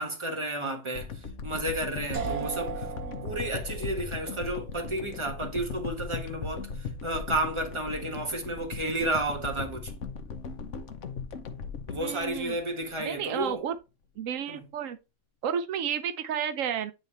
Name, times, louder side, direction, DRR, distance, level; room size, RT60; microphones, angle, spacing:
voice 1, 0.0-2.9 3.2-9.9 11.9-13.6 14.5-14.6, right 1 dB, 25° right, 1.6 m, -32 dB
sound 1, 0.9-13.2 13.7-13.8, left 5 dB, 70° left, 1.2 m, -38 dB
sound 2, 2.1-11.9, right 5 dB, 65° right, 1.7 m, -42 dB
voice 2, 2.9-3.3 12.0-12.6 13.0-13.7 14.2-15.0 15.4-16.9, right 8 dB, 85° right, 1.0 m, -32 dB
9.0 x 4.1 x 3.2 m
omnidirectional pair, 1.3 m